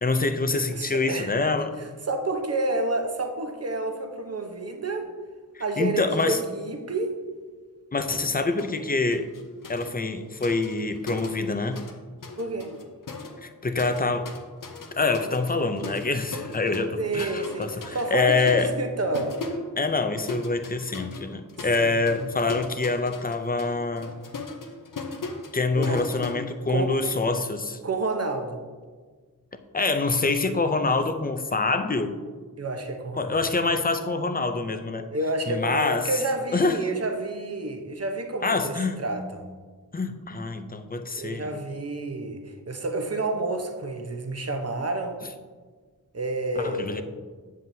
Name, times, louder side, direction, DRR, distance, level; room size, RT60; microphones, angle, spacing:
voice 1, 0.0-1.7 5.5-6.4 7.9-9.3 9.7-11.8 13.4-14.3 14.9-18.7 19.8-24.1 25.5-27.8 29.7-32.2 33.2-35.1 35.5-36.1 36.5-36.8 38.4-39.0 39.9-41.5 46.6-47.0, left 3 dB, 25° left, 9 dB, 0.5 m, -26 dB
voice 2, 0.7-1.3 1.8-5.1 5.6-7.2 12.3-12.7 17.0-19.3 21.8-22.0 25.8-26.0 26.7-26.9 27.8-28.6 32.6-33.4 35.1-39.4 41.1-45.2 46.1-47.0, right 2 dB, 45° right, 4 dB, 0.8 m, -29 dB
sound 1, 8.6-8.8 9.1-12.0 12.2-27.2, left 3 dB, 60° left, 0.8 m, -39 dB
7.6 x 7.2 x 2.7 m, 1.5 s
wide cardioid pair, 75°, 36 cm